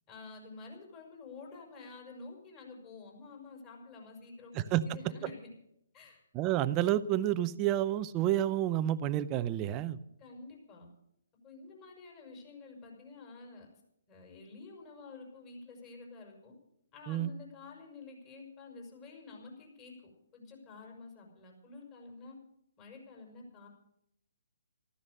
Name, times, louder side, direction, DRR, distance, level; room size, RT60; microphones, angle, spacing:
voice 1, 0.1-5.5 5.9-6.2 10.2-10.9 11.4-13.7 14.1-16.5 16.9-22.4 22.8-23.7, left 3 dB, 25° left, 1 dB, 5.6 m, -50 dB
voice 2, 6.3-10.0 17.1-17.3, right 12 dB, 25° right, 14 dB, 0.6 m, -29 dB
14.0 x 14.0 x 6.6 m, 0.78 s
figure-of-eight pair, 140°, 0 cm